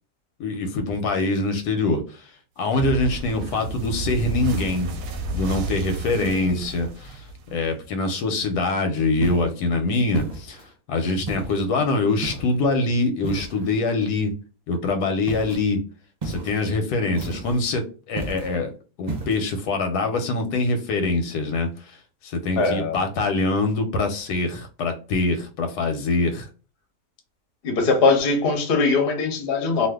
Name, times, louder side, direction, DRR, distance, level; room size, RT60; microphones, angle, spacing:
voice 1, 0.4-2.0 2.6-4.9 5.3-7.2 7.5-10.6 10.9-14.3 14.7-15.8 16.2-17.8 18.1-18.7 19.0-22.0 22.2-26.5, left 3 dB, 90° left, 1.2 m, -24 dB
sound 1, 2.7-7.8, right 2 dB, 70° right, 0.9 m, -31 dB
voice 2, 6.1-6.7 22.6-23.0 27.6-29.9, left 4 dB, 55° left, 0.7 m, -21 dB
sound 2, 9.2-9.6 10.1-10.7 11.3-11.7 12.2-12.6 13.2-13.7 15.3-15.6 16.2-16.6 17.2-17.6 18.2-18.6 19.1-19.4, right 2 dB, 40° right, 0.5 m, -33 dB
2.5 x 2.4 x 3.4 m
omnidirectional pair, 1.7 m